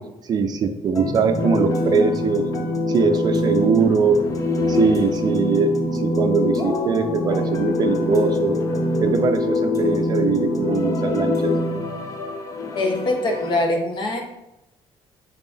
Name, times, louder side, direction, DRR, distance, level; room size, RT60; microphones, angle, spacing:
voice 1, 0.0-2.4 2.9-4.2 4.7-8.5 9.0-11.5, right 5 dB, 40° right, 7 dB, 0.5 m, -21 dB
sound 1, 0.9-13.6, left 2 dB, 30° left, 0.6 m, -24 dB
voice 2, 12.7-14.2, left 2 dB, 45° left, 2 dB, 1.2 m, -23 dB
6.1 x 4.1 x 3.8 m, 0.94 s
cardioid pair, 170°, 11 cm